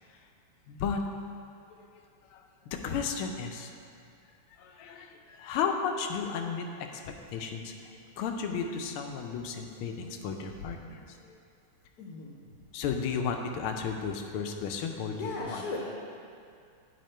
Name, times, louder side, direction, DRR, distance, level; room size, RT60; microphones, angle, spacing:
voice 1, 0.7-1.0 2.3-2.4 2.7-3.7 4.6-7.0 7.3-11.4 12.7-15.6, left 6 dB, 85° left, 4 dB, 1.5 m, -34 dB
voice 2, 12.0-12.7 15.1-15.9, left 3 dB, 60° left, -4 dB, 1.1 m, -38 dB
9.4 x 4.2 x 4.4 m, 2.4 s
omnidirectional pair, 2.4 m